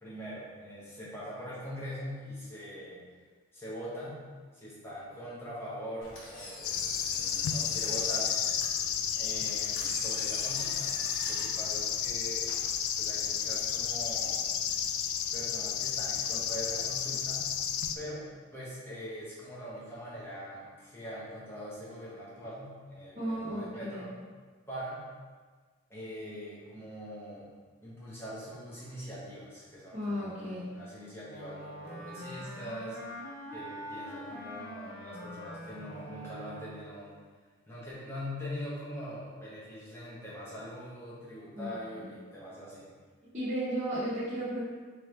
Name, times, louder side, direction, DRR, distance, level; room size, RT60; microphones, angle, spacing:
voice 1, 0.0-3.0 3.5-4.2 4.5-8.4 9.1-12.5 13.0-14.4 15.3-17.4 17.9-18.2 18.5-24.1 24.7-25.0 25.9-27.5 27.8-33.0 33.5-37.1 37.7-42.9, equal, 10° left, -9 dB, 1.0 m, -42 dB
Engine, 6.0-13.3, left 1 dB, 70° left, 1.0 m, -44 dB
sound 1, 6.6-18.0, left 8 dB, 85° left, 0.3 m, -32 dB
voice 2, 23.1-24.1 29.9-30.7 41.5-42.1 43.3-44.6, equal, 30° right, -12 dB, 1.0 m, -34 dB
Wind instrument woodwind instrument, 31.2-37.0, equal, 45° left, 0.7 m, -44 dB
3.7 x 3.1 x 3.2 m, 1.5 s
head